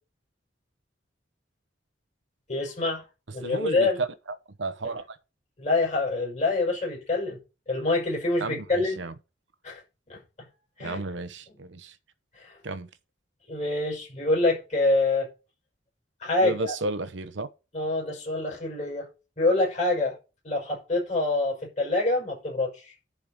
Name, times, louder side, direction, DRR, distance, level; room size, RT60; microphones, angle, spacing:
voice 1, 2.5-3.0 3.3-4.0 5.6-7.4 7.7-9.0 9.6-9.8 10.1-10.2 10.8-11.0 12.3-12.6 13.5-15.3 16.2-16.7 17.7-19.1 19.4-20.2 20.4-22.9, left 2 dB, 40° left, 6.0 m, -26 dB
voice 2, 3.4-5.2 8.4-9.1 10.8-12.0 12.6-12.9 16.4-17.5, right 2 dB, 75° right, 0.9 m, -33 dB
10.5 x 4.7 x 6.6 m
head